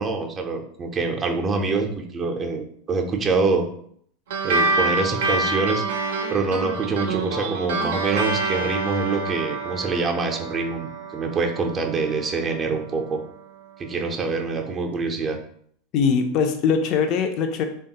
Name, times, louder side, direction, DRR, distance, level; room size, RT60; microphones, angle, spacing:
voice 1, 0.0-3.7 4.4-5.8 6.3-13.2 13.8-15.4, right 4 dB, 30° right, 3 dB, 0.5 m, -25 dB
sound 1, 4.3-13.1, right 3 dB, 80° right, 0.5 m, -27 dB
voice 2, 15.9-17.6, left 6 dB, 50° left, 6 dB, 0.4 m, -21 dB
3.0 x 2.3 x 2.8 m, 0.64 s
hypercardioid pair, 105°, 0 cm